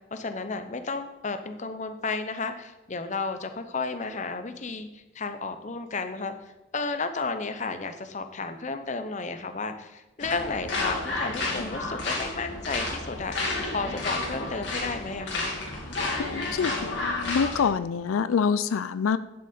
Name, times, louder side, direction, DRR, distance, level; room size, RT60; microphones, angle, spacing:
voice 1, 0.1-6.3 6.7-13.4 13.7-15.5, left 4 dB, 35° left, 9 dB, 0.7 m, -32 dB
sound 1, 10.2-17.7, left 2 dB, 60° left, 2.6 m, -31 dB
voice 2, 16.2-19.2, left 6 dB, 85° left, 15 dB, 0.4 m, -26 dB
11.0 x 6.5 x 4.3 m, 1.0 s
head